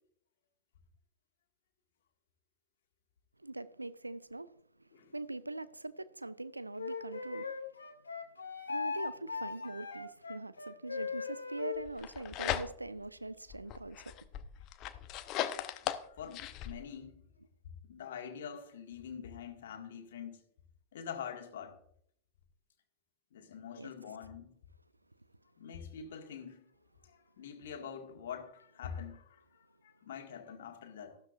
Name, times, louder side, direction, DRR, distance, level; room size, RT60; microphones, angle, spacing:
voice 1, 3.4-4.5 4.8-7.5 8.7-14.2 23.8-23.9, right 2 dB, 85° right, 0.5 m, -42 dB
Wind instrument woodwind instrument, 6.8-11.8, left 5 dB, 75° left, 2.1 m, -39 dB
sound 1, 11.9-13.1 13.5-16.7, left 11 dB, 40° left, 0.8 m, -38 dB
voice 2, 15.6-17.2 17.8-20.4 20.9-21.8 23.3-24.5 25.6-26.7 27.0-31.2, left 7 dB, 60° left, 1.9 m, -45 dB
14.0 x 12.5 x 2.5 m
figure-of-eight pair, 90°, 0 cm